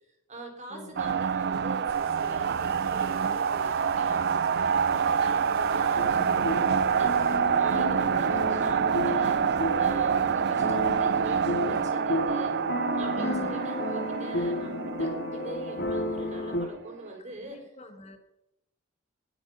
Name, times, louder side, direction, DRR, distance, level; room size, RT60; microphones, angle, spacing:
voice 1, 0.3-9.4 9.8-12.5 12.9-17.7, right 2 dB, 35° right, 2 dB, 4.5 m, -43 dB
sound 1, 1.0-16.8, right 6 dB, 55° right, 0.5 m, -27 dB
sound 2, 1.9-7.4, right 3 dB, 80° right, 1.9 m, -42 dB
sound 3, 6.0-16.7, left 1 dB, 55° left, 2.2 m, -33 dB
voice 2, 13.2-13.7 17.3-18.2, equal, 30° left, 6 dB, 2.0 m, -41 dB
21.0 x 8.3 x 5.7 m, 0.86 s
head